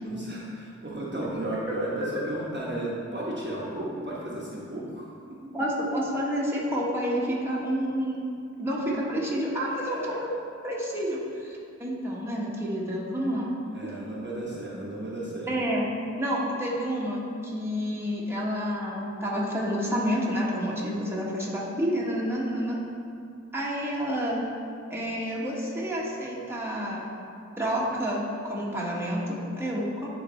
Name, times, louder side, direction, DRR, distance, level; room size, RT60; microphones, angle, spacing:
voice 1, 0.0-5.4 9.6-10.2 13.7-15.5, right 1 dB, 35° right, -6 dB, 1.1 m, -34 dB
voice 2, 5.5-8.2 8.6-10.2 10.6-13.5 15.5-15.9 16.2-22.8 23.5-24.4 24.9-27.1 27.6-30.1, equal, 10° right, -6 dB, 1.4 m, -29 dB
9.9 x 3.4 x 4.4 m, 2.5 s
wide cardioid pair, 60°, 30 cm